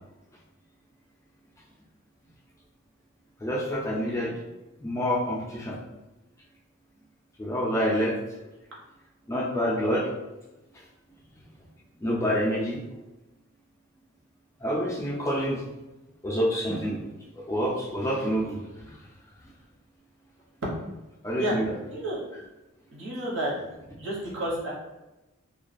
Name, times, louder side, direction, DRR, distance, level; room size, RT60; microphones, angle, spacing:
voice 1, 3.4-4.4 4.8-5.8 7.4-8.2 9.3-10.1 12.0-12.8 14.6-15.6 16.2-17.0 17.4-18.6 18.9-19.0 21.2-21.6, equal, 15° left, -4 dB, 0.3 m, -27 dB
voice 2, 21.9-22.2 22.9-23.5 24.0-24.7, right 1 dB, 60° right, -4 dB, 0.8 m, -30 dB
2.3 x 2.2 x 2.5 m, 1.0 s
head